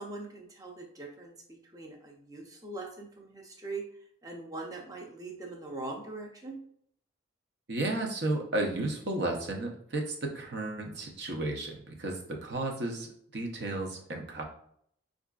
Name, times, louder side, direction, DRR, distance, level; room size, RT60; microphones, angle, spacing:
voice 1, 0.0-3.8 4.2-6.6, right 2 dB, 20° right, -1 dB, 0.6 m, -42 dB
voice 2, 7.7-13.1 13.3-14.4, right 2 dB, 60° right, 1 dB, 0.7 m, -33 dB
4.6 x 2.5 x 2.3 m, 0.65 s
head